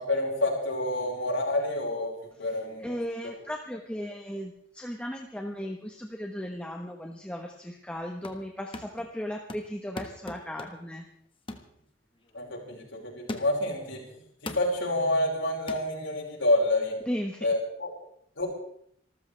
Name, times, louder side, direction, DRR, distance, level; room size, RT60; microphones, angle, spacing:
voice 1, 0.0-2.1 2.4-3.0 3.2-3.4 12.3-14.0 14.4-16.9 17.4-17.9 18.4-18.5, left 1 dB, 75° left, -2 dB, 5.4 m, -28 dB
voice 2, 2.8-11.1 17.1-17.5, equal, 5° left, 2 dB, 1.2 m, -36 dB
sound 1, 8.0-8.5 8.7-9.1 9.5-10.9 11.5-11.7 12.2-12.4 13.3-13.7 14.5-14.8 15.7-15.9, left 2 dB, 25° left, 1.4 m, -40 dB
27.0 x 14.0 x 3.4 m, 0.68 s
head